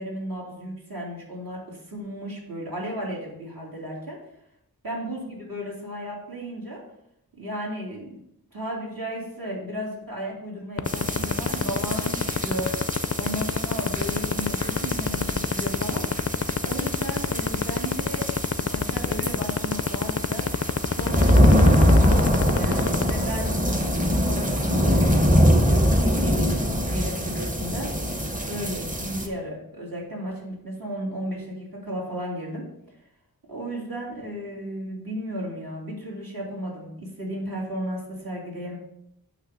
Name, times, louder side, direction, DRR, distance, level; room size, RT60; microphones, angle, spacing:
voice 1, 0.0-4.2 4.8-6.8 7.4-8.2 8.5-12.8 13.2-16.0 16.6-20.5 20.9-23.5 24.0-27.9 28.4-32.7 33.5-38.8, equal, 60° right, -4 dB, 3.0 m, -34 dB
sound 1, 10.8-23.1, left 6 dB, 40° left, 0.4 m, -22 dB
sound 2, 10.9-29.3, equal, 20° right, 1.0 m, -23 dB
8.9 x 3.1 x 6.4 m, 0.78 s
wide cardioid pair, 65°, 38 cm